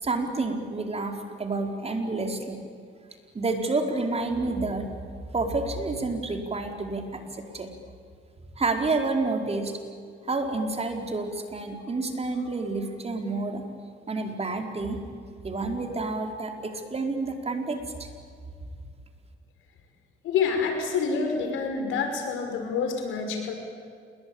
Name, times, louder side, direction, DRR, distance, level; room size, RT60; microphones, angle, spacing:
voice 1, 0.0-2.6 3.3-4.9 5.3-7.7 8.6-9.7 10.3-13.6 14.1-15.0 15.4-18.1, right 3 dB, 30° right, 3 dB, 4.6 m, -29 dB
voice 2, 20.2-23.5, left 5 dB, 90° left, 5 dB, 5.5 m, -27 dB
29.0 x 22.0 x 8.8 m, 2.3 s
cardioid pair, 90°, 20 cm